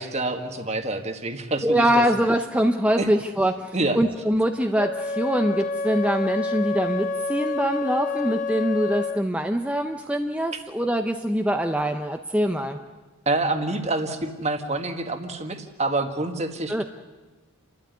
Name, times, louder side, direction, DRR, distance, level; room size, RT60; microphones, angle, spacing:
voice 1, 0.0-2.0 3.0-3.1 3.7-4.0 10.5-10.6 13.2-16.8, right 2 dB, 30° right, 6 dB, 1.7 m, -27 dB
voice 2, 1.6-12.8 16.7-16.8, equal, 5° right, 5 dB, 0.7 m, -23 dB
Wind instrument woodwind instrument, 4.8-9.3, left 3 dB, 35° left, 0.9 m, -28 dB
29.5 x 13.0 x 9.6 m, 1.2 s
head